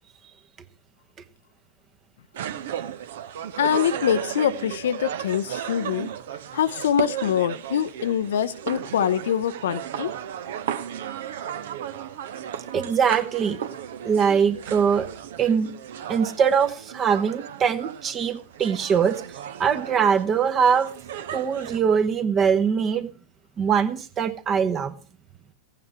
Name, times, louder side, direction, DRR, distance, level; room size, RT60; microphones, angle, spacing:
sound 1, 2.3-21.8, right 9 dB, 60° right, 0.8 m, -35 dB
voice 1, 3.6-6.1 6.5-10.1, left 9 dB, 60° left, 0.6 m, -24 dB
voice 2, 12.7-13.6 14.0-15.1 15.4-15.7 16.1-19.2 19.6-20.9 21.3-23.1 23.6-24.9, right 7 dB, 25° right, 1.1 m, -22 dB
16.0 x 9.1 x 4.7 m
figure-of-eight pair, 90°, 0 cm